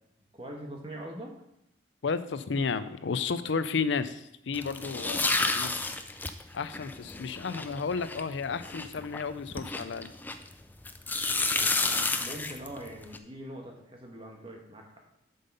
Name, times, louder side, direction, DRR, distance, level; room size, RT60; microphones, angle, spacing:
voice 1, 0.3-1.4 11.4-14.8, right 1 dB, 30° right, 1 dB, 1.3 m, -43 dB
voice 2, 2.0-5.7 6.5-10.1, left 5 dB, 75° left, 13 dB, 0.5 m, -32 dB
sound 1, 4.5-10.5 10.9-13.2, left 3 dB, 10° left, 0.3 m, -31 dB
7.6 x 5.4 x 5.4 m, 0.82 s
head